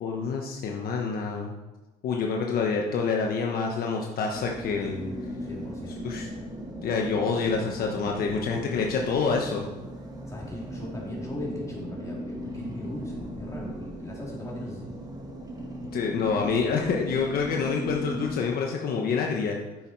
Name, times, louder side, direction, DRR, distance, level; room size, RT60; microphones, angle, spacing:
voice 1, 0.0-1.5 2.0-5.0 6.0-6.3 6.8-9.7 15.9-19.6, left 5 dB, 60° left, 1 dB, 1.1 m, -27 dB
sound 1, 4.3-18.4, equal, 20° right, 2.0 m, -38 dB
voice 2, 4.8-6.0 10.3-14.9, left 1 dB, 20° left, -4 dB, 3.6 m, -38 dB
9.7 x 7.5 x 4.7 m, 1.1 s
cardioid pair, 110°, 17 cm